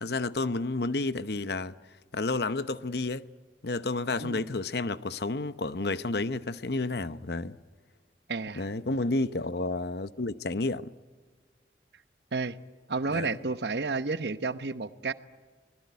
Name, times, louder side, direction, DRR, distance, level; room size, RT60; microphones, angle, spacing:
voice 1, 0.0-1.7 2.1-3.3 3.6-7.6 8.6-10.9 13.1-13.3, left 2 dB, 65° left, 0.8 m, -31 dB
voice 2, 8.3-8.6 12.3-12.6 12.9-15.1, right 3 dB, 75° right, 1.0 m, -31 dB
26.0 x 21.0 x 9.5 m
head